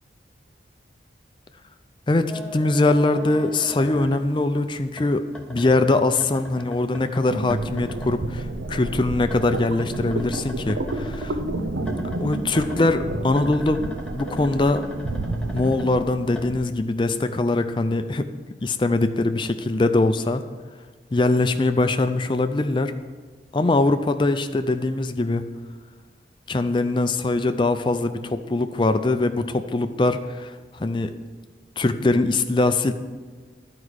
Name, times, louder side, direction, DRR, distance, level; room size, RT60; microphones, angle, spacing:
voice 1, 2.1-11.4 12.2-13.8 14.2-14.8 15.5-18.3 18.6-20.4 21.1-22.9 23.5-25.4 26.5-31.1 31.8-32.9, left 2 dB, 25° left, 9 dB, 0.4 m, -22 dB
sound 1, 2.3-4.6 4.9-8.1 8.4-11.3 11.8-16.5, left 1 dB, 5° left, 0.8 m, -39 dB
sound 2, 7.3-16.7, right 2 dB, 90° right, 0.7 m, -30 dB
11.0 x 4.8 x 6.4 m, 1.4 s
head